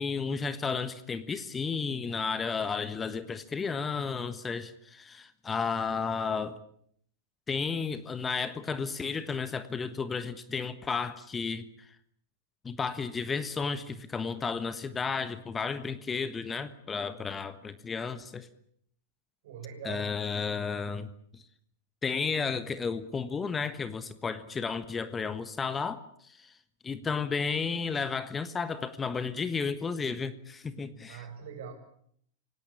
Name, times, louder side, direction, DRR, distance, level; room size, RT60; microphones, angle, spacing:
voice 1, 0.0-6.5 7.5-11.9 12.6-18.5 19.8-21.4 22.0-26.5 26.8-31.2, left 5 dB, 15° left, 12 dB, 1.4 m, -33 dB
voice 2, 19.4-20.2 31.1-31.7, right 7 dB, 60° right, 7 dB, 7.3 m, -42 dB
27.5 x 17.5 x 8.6 m, 0.66 s
figure-of-eight pair, 95°, 0 cm